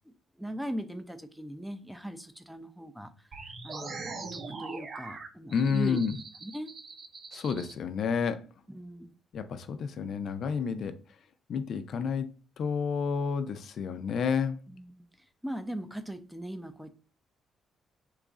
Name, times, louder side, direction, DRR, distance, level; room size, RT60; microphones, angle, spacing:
voice 1, 0.1-3.1 3.6-6.0 6.4-6.7 8.7-9.1 14.7-14.9 15.4-16.9, right 1 dB, ahead, 9 dB, 0.4 m, -39 dB
strange alien sound, 3.3-7.7, right 4 dB, 50° right, 0.6 m, -42 dB
voice 2, 5.5-6.1 7.3-8.4 9.3-11.0 11.5-12.3 12.6-14.6, left 6 dB, 65° left, 10 dB, 0.4 m, -30 dB
3.0 x 2.4 x 3.7 m, 0.36 s
cardioid pair, 90°, 0 cm